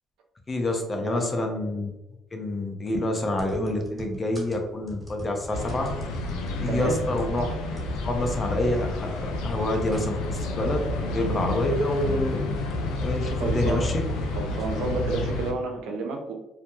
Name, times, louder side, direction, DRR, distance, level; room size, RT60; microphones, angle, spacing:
voice 1, 0.5-2.0 2.3-5.9 6.6-7.4 8.0-12.4 13.0-14.0, left 1 dB, 35° left, 3 dB, 0.6 m, -27 dB
typewriting fast, 3.4-7.4 7.8-8.0 8.3-8.4, equal, 10° right, 1.3 m, -42 dB
sound 1, 5.5-15.5, left 2 dB, 85° left, 0.3 m, -30 dB
voice 2, 6.7-7.0 13.4-13.9 14.4-16.3, right 3 dB, 80° right, 3 dB, 0.5 m, -30 dB
sound 2, 7.1-14.9, right 1 dB, 25° right, 0.8 m, -46 dB
2.2 x 2.1 x 2.9 m, 0.97 s
supercardioid pair, 65°, 0 cm